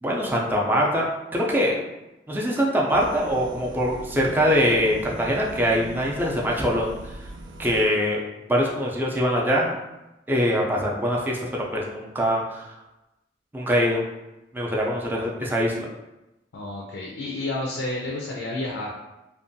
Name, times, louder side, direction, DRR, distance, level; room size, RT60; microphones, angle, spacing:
voice 1, 0.0-1.8 2.3-6.9 7.6-8.2 8.5-9.7 10.3-12.6 13.5-14.0 14.5-15.9, equal, 10° right, -2 dB, 0.4 m, -23 dB
sound 1, 2.9-7.9, right 2 dB, 90° right, 0.3 m, -40 dB
voice 2, 16.5-18.9, left 2 dB, 85° left, -2 dB, 0.4 m, -30 dB
2.5 x 2.2 x 2.6 m, 0.97 s
head